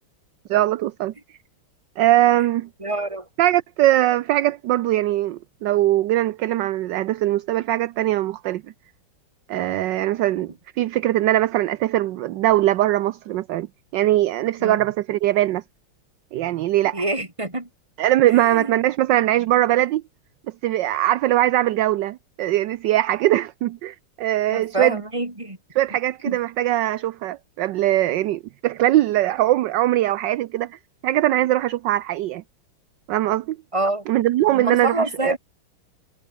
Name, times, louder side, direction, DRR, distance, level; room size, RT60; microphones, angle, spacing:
voice 1, 0.5-1.1 2.0-2.7 3.4-8.6 9.5-10.5 10.8-13.7 13.9-15.6 16.3-17.0 18.0-20.0 20.6-25.0 25.7-32.4 33.1-33.6 34.1-35.4, right 14 dB, 70° right, 1.2 m, -21 dB
voice 2, 2.8-3.3 14.6-14.8 16.9-17.7 18.3-18.7 24.5-25.6 26.3-26.4 33.7-34.1 34.5-35.4, right 2 dB, 15° right, 3.5 m, -26 dB
omnidirectional pair, 2.4 m